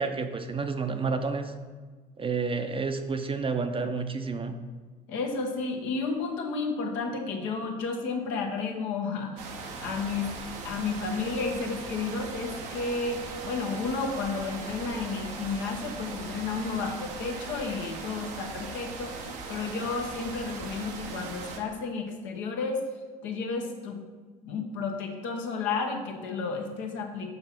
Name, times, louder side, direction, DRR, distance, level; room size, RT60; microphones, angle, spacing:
voice 1, 0.0-1.5 2.2-4.6, right 4 dB, 30° right, 7 dB, 0.6 m, -30 dB
voice 2, 5.1-9.5 9.8-10.3 10.6-19.2 19.5-22.8 23.2-24.0 24.4-27.3, left 4 dB, 70° left, 2 dB, 1.1 m, -32 dB
sound 1, 9.4-21.6, right 4 dB, 80° right, 0.9 m, -39 dB
5.8 x 5.5 x 4.4 m, 1.4 s
hypercardioid pair, 60°, 19 cm